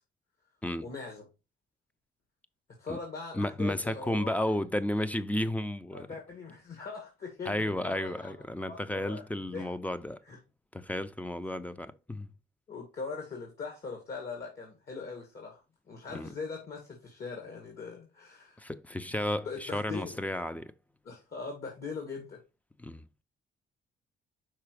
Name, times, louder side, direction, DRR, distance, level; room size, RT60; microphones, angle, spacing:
voice 1, 0.8-1.2 2.8-4.5 5.9-7.6 7.8-9.7 10.2-10.4 12.7-15.6 15.9-18.6 19.0-19.1 19.4-20.3 21.0-22.4, left 4 dB, 50° left, 2.2 m, -41 dB
voice 2, 3.3-6.1 7.5-10.2 10.7-12.3 16.1-16.3 18.6-20.7 22.8-23.0, left 1 dB, 5° left, 0.5 m, -33 dB
5.9 x 4.1 x 4.8 m
cardioid pair, 90°, 20 cm